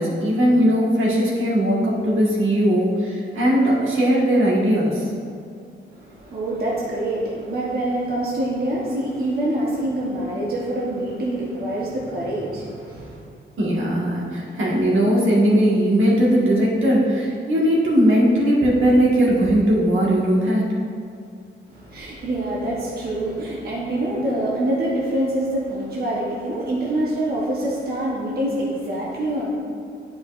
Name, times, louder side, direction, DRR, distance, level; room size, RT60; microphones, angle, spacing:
voice 1, 0.0-5.0 13.6-20.7, equal, 80° right, -5 dB, 1.6 m, -19 dB
voice 2, 5.9-13.2 21.7-29.5, right 1 dB, 50° right, -6 dB, 1.0 m, -25 dB
10.5 x 4.8 x 2.5 m, 2.3 s
wide cardioid pair, 170°, 20 cm